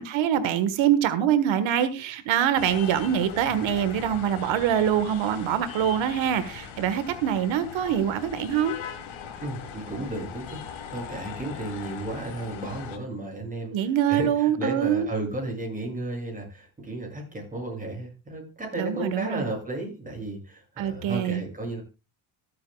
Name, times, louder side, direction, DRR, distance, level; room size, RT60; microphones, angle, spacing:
voice 1, 0.0-8.7 13.7-15.1 18.8-19.4 20.8-21.4, right 9 dB, 80° right, 12 dB, 1.5 m, -24 dB
sound 1, 2.5-13.0, left 7 dB, 80° left, 2.7 m, -40 dB
voice 2, 9.4-10.6 10.9-21.8, right 2 dB, 15° right, 0 dB, 7.3 m, -33 dB
25.5 x 8.6 x 2.3 m, 0.27 s
cardioid pair, 105°, 46 cm